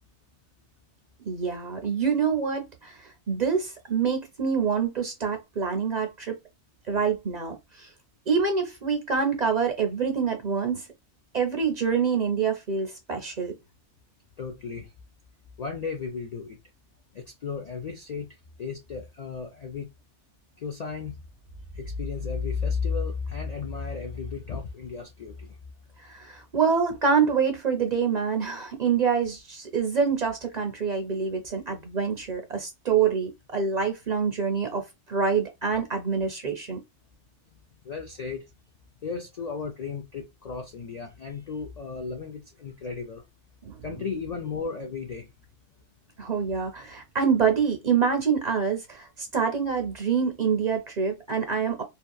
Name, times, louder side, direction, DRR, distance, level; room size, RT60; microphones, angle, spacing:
voice 1, 1.3-6.3 6.9-7.9 8.3-10.9 11.3-13.5 26.1-36.8 43.6-43.8 46.2-51.8, right 6 dB, 50° right, 0.6 m, -26 dB
voice 2, 14.4-14.9 15.6-16.6 17.1-19.9 20.6-21.1 21.7-25.6 37.8-38.5 39.0-43.2 43.8-45.3, left 5 dB, 55° left, 0.4 m, -34 dB
2.8 x 2.4 x 2.2 m
omnidirectional pair, 1.2 m